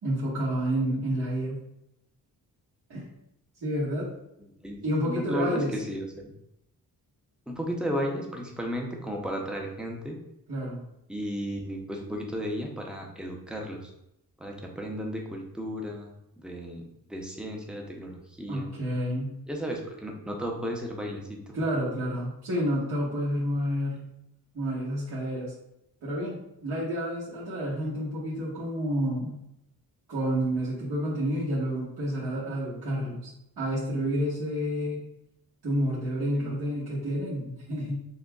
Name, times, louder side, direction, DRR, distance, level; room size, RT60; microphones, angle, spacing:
voice 1, 0.0-1.6 2.9-3.1 3.6-4.1 4.8-5.7 10.5-10.8 18.5-19.3 21.5-24.1 24.5-25.5 26.0-29.4 30.1-33.3 33.6-35.0 35.6-38.0, equal, 75° right, -9 dB, 1.4 m, -29 dB
voice 2, 4.4-4.8 5.0-6.3 7.5-10.2 11.1-13.9 14.4-16.1 16.4-16.8 17.1-18.7 19.5-21.6 36.4-36.6 36.9-37.0, equal, ahead, 0 dB, 0.6 m, -34 dB
6.3 x 2.2 x 2.3 m, 0.81 s
wide cardioid pair, 120°, 37 cm